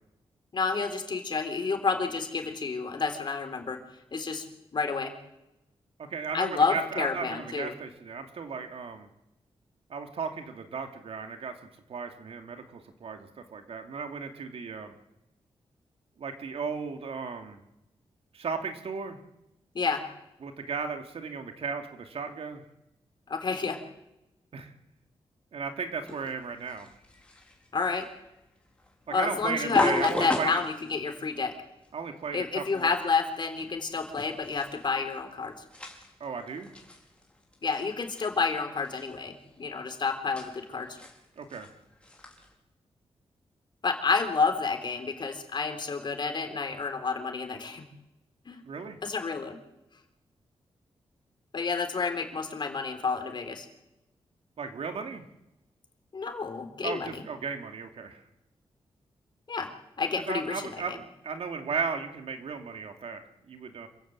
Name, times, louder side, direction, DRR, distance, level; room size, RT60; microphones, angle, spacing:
voice 1, 0.5-3.8 4.1-4.4 4.7-5.1 6.3-7.7 19.7-20.0 23.3-23.8 27.7-28.1 29.1-31.5 32.3-35.5 37.6-41.0 43.8-47.9 48.5-48.6 49.0-49.6 51.5-53.7 56.1-57.2 59.5-59.7 60.0-61.0, left 4 dB, 50° left, 6 dB, 3.7 m, -29 dB
voice 2, 6.0-9.1 9.9-11.5 11.9-14.9 16.2-17.6 18.3-19.2 20.4-22.6 24.5-24.7 25.5-26.9 29.2-30.6 31.9-32.9 36.2-36.7 41.4-41.7 48.6-49.0 54.6-55.2 56.8-58.2 60.3-63.9, right 5 dB, 75° right, 6 dB, 2.7 m, -35 dB
sound 1, 26.0-42.5, left 2 dB, 10° left, 4.8 m, -38 dB
27.0 x 16.0 x 7.8 m, 0.92 s
wide cardioid pair, 110°, 10 cm